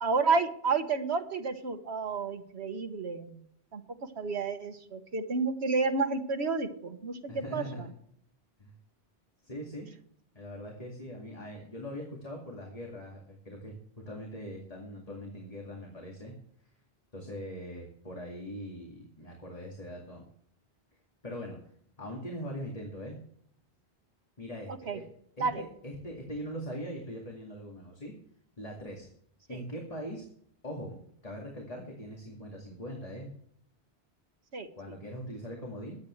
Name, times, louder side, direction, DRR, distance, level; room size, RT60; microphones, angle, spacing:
voice 1, 0.0-3.4 3.7-3.8 4.2-7.6 24.9-25.0 25.4-25.6 29.5-29.6 34.5-34.7, right 4 dB, 80° right, 7 dB, 1.5 m, -30 dB
voice 2, 7.3-7.9 8.6-8.7 9.4-9.9 10.3-13.7 14.1-16.3 17.1-20.2 21.2-21.6 22.0-23.2 24.4-25.0 25.4-28.1 28.6-29.1 29.5-30.2 30.6-31.0 31.2-33.3 34.8-36.0, equal, 35° left, -1 dB, 2.4 m, -41 dB
21.5 x 8.6 x 3.2 m, 0.65 s
omnidirectional pair, 1.1 m